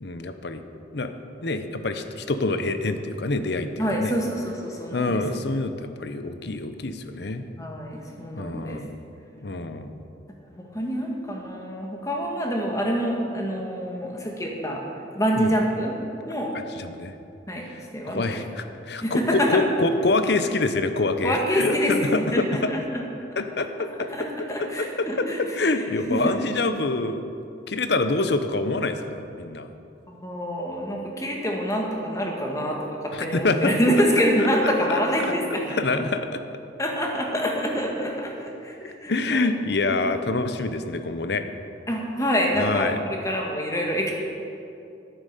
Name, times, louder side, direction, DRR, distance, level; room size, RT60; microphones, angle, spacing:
voice 1, 0.0-0.6 0.9-1.1 1.4-4.1 4.9-7.5 8.4-8.9 9.4-10.0 15.4-15.5 16.7-17.1 17.7-17.8 18.1-22.7 23.4-24.1 24.6-25.3 25.5-27.3 27.7-29.7 33.1-33.8 34.6-35.0 35.7-36.4 38.8-41.4 42.6-43.0, left 3 dB, 60° left, 9 dB, 0.7 m, -26 dB
voice 2, 3.8-5.2 7.6-8.8 10.6-14.8 15.1-15.9 16.3-16.5 17.5-17.6 17.9-18.5 19.0-19.6 21.2-22.8 24.1-25.8 26.1-26.4 30.1-35.8 36.8-39.5 41.9-44.1, equal, 15° left, 0 dB, 1.4 m, -26 dB
10.0 x 9.5 x 6.6 m, 2.7 s
head